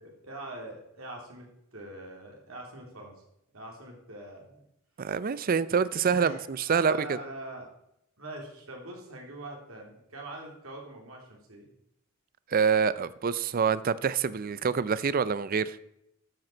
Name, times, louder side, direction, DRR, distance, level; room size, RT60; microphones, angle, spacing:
voice 1, 0.0-3.2 3.5-4.7 6.1-7.7 8.2-11.7, right 1 dB, 75° right, 0 dB, 2.9 m, -43 dB
voice 2, 5.0-7.2 12.5-15.8, right 6 dB, 45° right, 17 dB, 0.4 m, -26 dB
12.0 x 7.8 x 4.4 m, 0.80 s
head